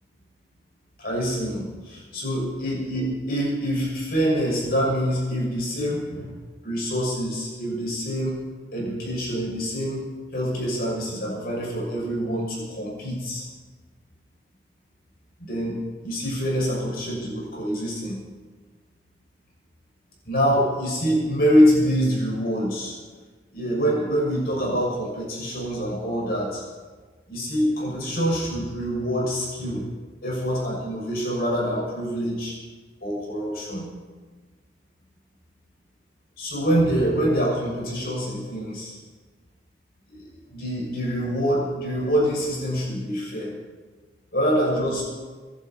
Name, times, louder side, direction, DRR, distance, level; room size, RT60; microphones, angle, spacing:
voice 1, 1.0-6.3 6.6-8.4 8.7-10.0 10.3-13.4 15.4-15.8 16.0-18.2 20.3-23.0 23.5-26.6 27.3-29.8 30.2-32.6 33.0-33.9 36.4-39.0 40.1-43.5 44.3-45.0, equal, 55° left, -3 dB, 6.5 m, -25 dB
25.5 x 11.5 x 4.5 m, 1.4 s
head